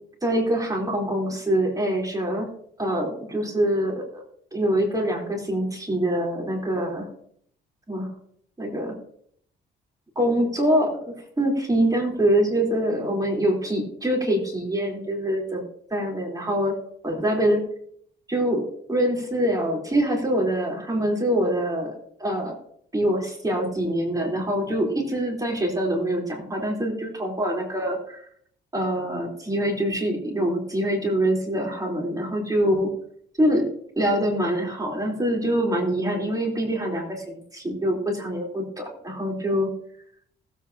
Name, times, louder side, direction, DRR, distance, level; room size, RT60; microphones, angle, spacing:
voice 1, 0.2-2.5 2.8-4.2 4.5-7.1 7.9-8.1 8.6-8.9 10.2-10.9 11.4-15.6 15.9-16.7 17.0-17.6 18.3-18.6 18.9-21.9 22.2-22.5 22.9-28.2 28.7-32.9 33.4-33.6 34.0-39.7, right 1 dB, 20° right, -1 dB, 3.8 m, -24 dB
20.0 x 8.3 x 2.9 m, 0.65 s
cardioid pair, 90°, 20 cm